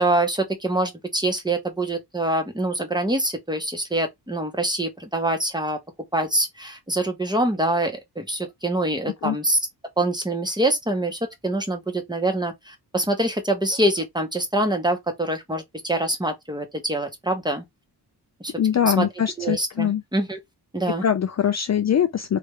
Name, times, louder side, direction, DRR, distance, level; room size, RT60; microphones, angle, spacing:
voice 1, 0.0-5.8 6.1-9.6 10.0-17.6 18.4-18.5 18.8-19.1 19.4-20.4 20.7-21.0, right 1 dB, 10° right, 1.0 m, -25 dB
voice 2, 18.6-20.0 21.0-22.4, left 8 dB, 40° left, 0.4 m, -22 dB
3.4 x 3.2 x 3.2 m
wide cardioid pair, 140°, 42 cm